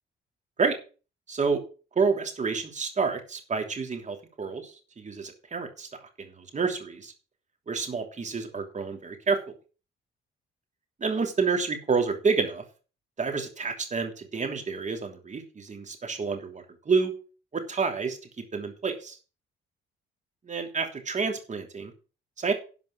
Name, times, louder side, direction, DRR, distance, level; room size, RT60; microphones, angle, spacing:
voice 1, 1.3-1.6 1.9-5.9 6.2-7.1 7.7-9.4 11.0-12.6 13.2-17.1 17.5-18.2 18.5-19.2 20.4-21.9 22.4-22.5, right 5 dB, 35° right, 5 dB, 3.1 m, -29 dB
12.0 x 5.2 x 6.8 m, 0.35 s
cardioid pair, 90°, 20 cm